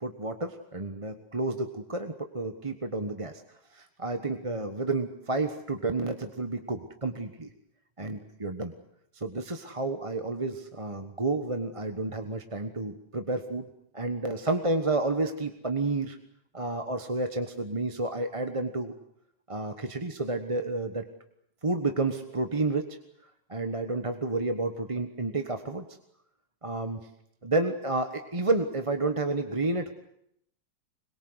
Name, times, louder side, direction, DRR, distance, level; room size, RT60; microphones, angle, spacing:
voice 1, 0.0-3.4 3.7-7.5 8.0-8.7 9.1-13.6 13.9-16.2 16.5-18.9 19.5-21.1 21.6-23.0 23.5-25.8 26.6-27.1 27.4-29.9, right 2 dB, 20° right, 6 dB, 1.2 m, -30 dB
25.0 x 22.5 x 8.0 m, 0.73 s
omnidirectional pair, 2.0 m